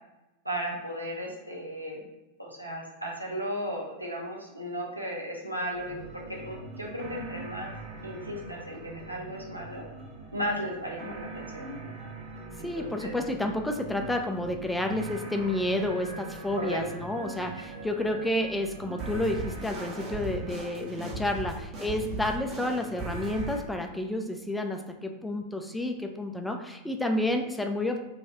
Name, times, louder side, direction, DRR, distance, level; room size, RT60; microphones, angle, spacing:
voice 1, 0.4-2.1 2.4-7.7 8.0-9.8 10.3-11.9 12.6-13.1 16.5-16.8, equal, 85° right, -2 dB, 0.7 m, -35 dB
sound 1, 5.7-23.6, right 3 dB, 30° right, 1.1 m, -40 dB
voice 2, 12.6-28.0, left 1 dB, 5° left, 4 dB, 0.3 m, -30 dB
2.9 x 2.3 x 2.9 m, 0.99 s
figure-of-eight pair, 90°, 0 cm